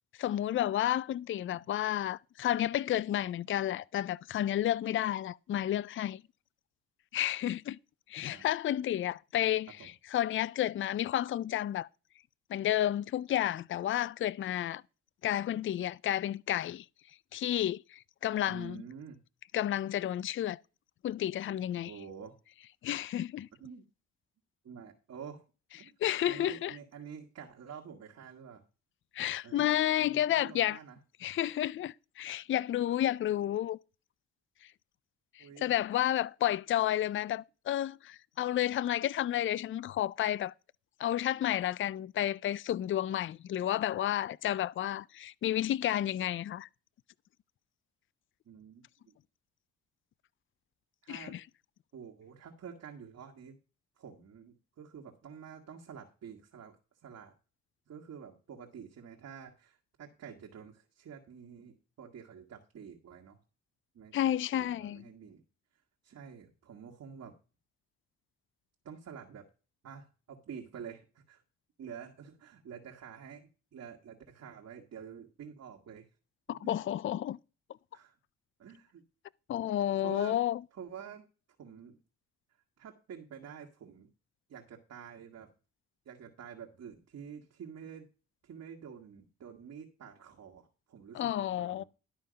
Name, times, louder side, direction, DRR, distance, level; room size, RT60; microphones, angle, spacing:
voice 1, 0.2-6.2 7.1-7.8 8.1-11.9 12.5-14.8 15.2-16.9 17.3-18.8 19.5-20.6 21.0-21.9 22.8-23.5 25.8-26.8 29.1-30.8 31.2-33.8 35.4-40.5 41.0-46.7 51.1-51.4 64.1-65.0 76.5-77.4 79.5-80.6 91.1-91.8, left 12 dB, 40° left, 0.4 m, -31 dB
voice 2, 18.5-19.2 21.8-22.4 23.6-23.8 24.6-25.4 25.8-25.9 26.3-28.6 29.4-31.0 32.9-33.0 35.4-35.7 48.4-49.1 51.0-51.4 51.9-53.6 54.0-56.8 57.0-57.3 57.9-63.4 63.9-65.4 66.0-67.3 68.8-69.5 69.8-71.4 71.8-76.1 76.5-76.9 77.9-78.1 78.6-79.0 80.0-80.4 80.7-81.2 81.6-82.0 82.8-84.1 84.5-85.5 86.0-88.1 88.4-91.8, right 7 dB, 60° right, 1.7 m, -48 dB
12.0 x 5.5 x 5.2 m
cardioid pair, 90°, 30 cm